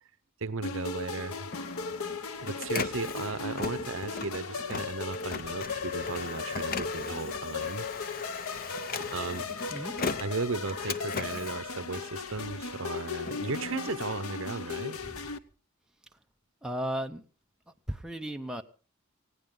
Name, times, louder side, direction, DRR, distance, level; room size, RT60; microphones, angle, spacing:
voice 1, 0.4-1.5 2.4-7.9 9.0-15.0, right 4 dB, 65° right, 0.9 m, -36 dB
sound 1, 0.6-15.4, left 4 dB, 75° left, 1.0 m, -37 dB
Printer, 1.2-12.5 13.0-14.8, left 4 dB, 40° left, 0.7 m, -39 dB
voice 2, 16.6-17.2 17.9-18.6, equal, 5° right, 0.8 m, -34 dB
19.5 x 16.0 x 3.9 m
head